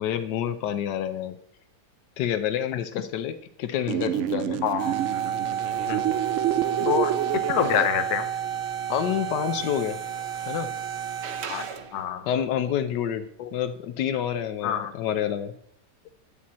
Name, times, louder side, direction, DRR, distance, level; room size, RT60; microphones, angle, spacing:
voice 1, 0.0-1.4 2.2-4.6 5.7-5.8 8.9-10.0 10.5-10.7 12.3-15.5, left 9 dB, 85° left, 10 dB, 1.3 m, -28 dB
sound 1, 3.9-7.9, right 11 dB, 85° right, 0.6 m, -28 dB
voice 2, 4.6-5.0 5.9-6.2 6.8-8.3 11.5-12.3 13.4-13.5 14.6-14.9, left 9 dB, 70° left, 10 dB, 1.2 m, -27 dB
sound 2, 4.8-12.0, right 9 dB, 50° right, 0.8 m, -31 dB
10.5 x 7.5 x 4.2 m, 0.74 s
omnidirectional pair, 1.8 m